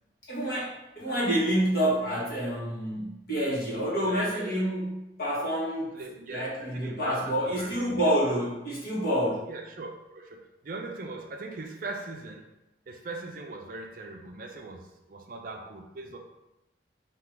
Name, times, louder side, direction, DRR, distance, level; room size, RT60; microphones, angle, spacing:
voice 1, 0.3-5.9 6.3-9.4, equal, 55° left, -6 dB, 1.5 m, -28 dB
voice 2, 4.0-4.8 5.9-8.0 9.5-12.5 12.9-16.2, right 3 dB, 50° right, 3 dB, 0.4 m, -40 dB
3.7 x 2.9 x 4.5 m, 0.93 s
head